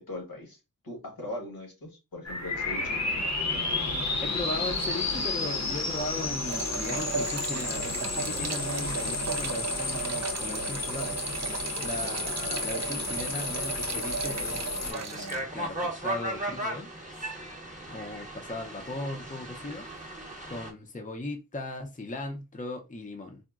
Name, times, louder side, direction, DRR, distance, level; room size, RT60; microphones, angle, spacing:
voice 1, 0.1-0.6 0.8-3.0, left 1 dB, 80° left, 1.3 m, -40 dB
sound 1, 2.2-14.9, left 3 dB, 50° left, 0.8 m, -32 dB
voice 2, 4.2-11.2 11.8-16.9 17.9-19.8 20.5-23.4, left 2 dB, 20° left, 0.5 m, -38 dB
sound 2, 6.4-15.4, right 5 dB, 50° right, 0.4 m, -36 dB
sound 3, 14.8-20.7, right 1 dB, 20° right, 0.8 m, -36 dB
3.8 x 2.1 x 2.3 m
wide cardioid pair, 60°, 36 cm